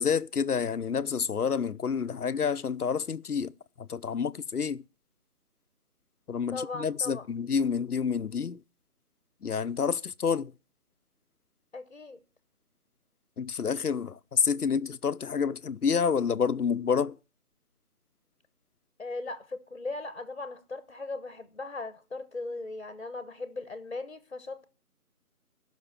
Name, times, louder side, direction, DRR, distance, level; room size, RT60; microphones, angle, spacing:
voice 1, 0.0-3.5 3.8-4.8 6.3-8.6 9.4-10.5 13.4-17.1, left 6 dB, 85° left, 0.8 m, -28 dB
voice 2, 6.5-7.3 11.7-12.2 19.0-24.7, left 3 dB, 45° left, 1.2 m, -38 dB
15.0 x 6.2 x 7.3 m
figure-of-eight pair, 175°, 45 cm